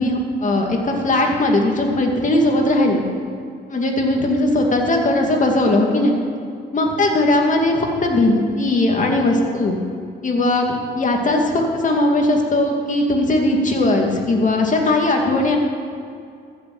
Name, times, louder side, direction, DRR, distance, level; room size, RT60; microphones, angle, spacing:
voice 1, 0.0-3.0 3.7-6.2 6.7-9.8 10.2-15.6, left 2 dB, 40° left, 1 dB, 2.5 m, -18 dB
14.5 x 7.0 x 7.9 m, 2.4 s
cardioid pair, 90°, 20 cm